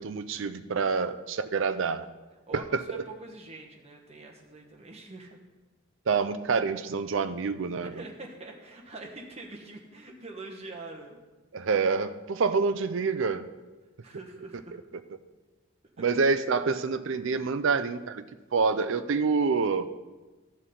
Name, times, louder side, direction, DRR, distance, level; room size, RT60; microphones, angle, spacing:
voice 1, 0.0-2.1 2.5-3.0 6.1-8.0 11.5-13.5 16.0-18.2 18.5-19.9, right 4 dB, 60° right, 10 dB, 0.5 m, -27 dB
voice 2, 2.5-5.4 7.8-11.2 14.0-14.8 16.0-16.1, right 2 dB, 30° right, 0 dB, 1.2 m, -44 dB
14.0 x 6.4 x 3.8 m, 1.2 s
head